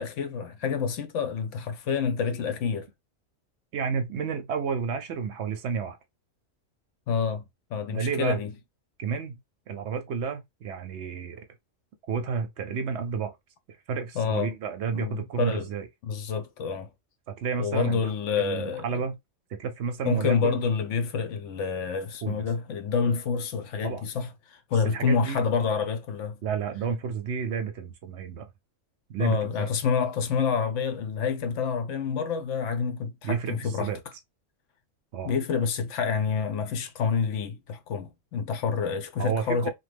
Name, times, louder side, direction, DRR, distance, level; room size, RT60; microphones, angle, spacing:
voice 1, 0.0-2.9 7.1-7.4 7.7-8.5 14.1-14.5 14.9-15.7 16.0-16.9 17.6-19.0 20.0-26.4 29.2-33.9 35.2-39.7, left 6 dB, 70° left, 0.9 m, -28 dB
voice 2, 3.7-6.0 7.9-8.4 9.0-9.4 9.7-11.5 12.1-13.3 13.7-15.9 17.3-18.0 18.4-19.2 19.5-20.6 22.2-22.5 23.8-24.0 24.9-25.4 26.4-28.5 29.1-29.4 33.2-34.0 35.1-35.3 39.2-39.7, right 6 dB, 65° right, 0.8 m, -31 dB
3.0 x 2.2 x 3.2 m
omnidirectional pair, 1.4 m